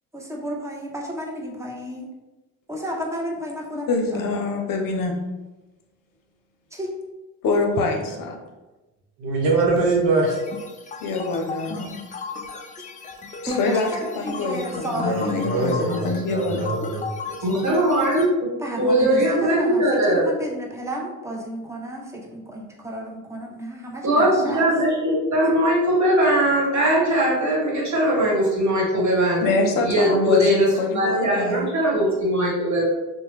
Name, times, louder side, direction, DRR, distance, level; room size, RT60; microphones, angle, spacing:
voice 1, 0.1-2.1 2.7-4.6 6.7-6.9 13.4-15.9 16.8-17.1 17.4-17.5 18.6-24.7 25.4-25.5, equal, 5° right, -1 dB, 0.7 m, -32 dB
voice 2, 3.9-5.1 7.4-8.4 11.0-12.0 13.6-13.9 14.2-16.7 29.4-31.7, left 3 dB, 55° left, 3 dB, 0.7 m, -25 dB
voice 3, 9.2-10.4 15.0-16.0 16.3-17.0, right 3 dB, 75° right, -1 dB, 0.9 m, -22 dB
sound 1, 10.3-18.3, left 4 dB, 20° left, 0.3 m, -35 dB
voice 4, 17.4-18.5 18.8-20.3 24.0-29.4 29.8-32.8, right 1 dB, 45° right, -4 dB, 1.4 m, -20 dB
2.9 x 2.2 x 3.1 m, 1.1 s
supercardioid pair, 65°, 41 cm